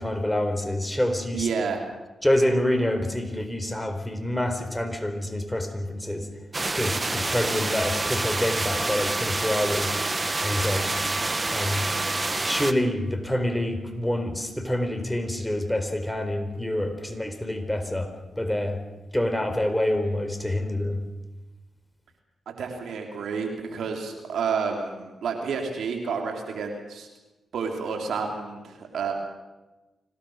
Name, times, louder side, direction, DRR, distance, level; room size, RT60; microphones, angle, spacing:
voice 1, 0.0-1.5 2.2-6.3 6.8-10.0 10.4-10.9 11.5-11.9 12.4-18.8 19.1-21.0, left 1 dB, 10° left, 7 dB, 4.4 m, -27 dB
voice 2, 1.3-1.8 22.6-27.1 27.5-29.1, right 5 dB, 75° right, 3 dB, 3.6 m, -30 dB
sound 1, 6.5-12.7, right 2 dB, 30° right, 1.7 m, -27 dB
26.0 x 18.0 x 6.6 m, 1.1 s
supercardioid pair, 45°, 0 cm